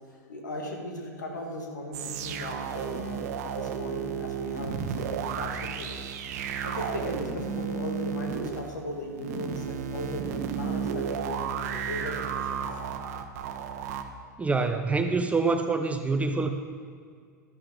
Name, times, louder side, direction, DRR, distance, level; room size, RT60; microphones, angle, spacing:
voice 1, 0.3-5.9 6.6-12.7, left 1 dB, 75° left, 2 dB, 2.0 m, -37 dB
sound 1, 1.9-14.0, right 7 dB, 60° right, 0.9 m, -33 dB
voice 2, 14.4-16.5, right 4 dB, 15° right, 6 dB, 0.7 m, -26 dB
12.0 x 11.5 x 3.9 m, 2.1 s
figure-of-eight pair, 85°, 10 cm